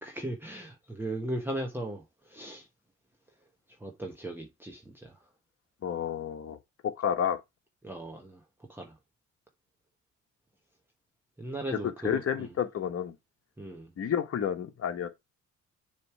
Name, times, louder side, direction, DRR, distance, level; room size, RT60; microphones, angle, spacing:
voice 1, 0.0-2.7 3.8-5.2 7.8-8.4 8.7-8.9 11.4-12.5 13.6-13.9, right 1 dB, 5° right, 1.2 m, -37 dB
voice 2, 5.8-6.6 6.8-7.4 12.0-13.1 14.0-15.1, left 8 dB, 50° left, 1.3 m, -30 dB
6.8 x 3.3 x 4.7 m
cardioid pair, 90°, 30 cm